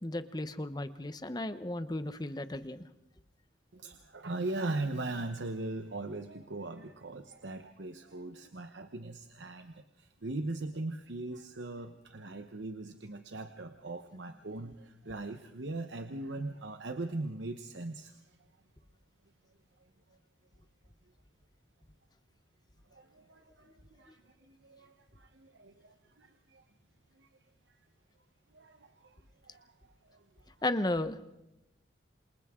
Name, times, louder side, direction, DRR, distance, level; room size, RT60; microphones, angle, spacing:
voice 1, 0.0-2.9 24.1-24.2 30.6-31.2, left 1 dB, 20° left, 11 dB, 0.9 m, -34 dB
voice 2, 3.7-18.2 22.9-26.6 27.2-27.3 27.7-27.8 28.5-29.2 29.4-29.7 30.0-30.2, right 2 dB, 80° right, 7 dB, 1.0 m, -40 dB
28.0 x 26.5 x 3.8 m, 0.91 s
head